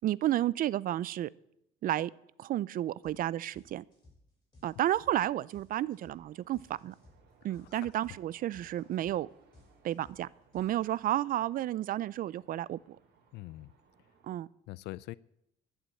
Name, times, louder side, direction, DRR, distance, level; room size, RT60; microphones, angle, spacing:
voice 1, 0.0-1.3 1.8-2.1 2.4-3.8 4.6-6.9 7.4-9.3 9.8-10.3 10.5-13.0 14.2-14.5, right 13 dB, 55° right, 22 dB, 0.5 m, -31 dB
sound 1, 3.0-3.2 3.5-11.3, left 2 dB, 25° left, 6.4 m, -60 dB
sound 2, 5.7-14.3, right 4 dB, 70° right, 3.3 m, -65 dB
voice 2, 7.6-7.9 13.3-13.7 14.7-15.1, left 18 dB, 85° left, 21 dB, 0.4 m, -43 dB
11.0 x 7.4 x 9.8 m, 0.79 s
cardioid pair, 110°, 17 cm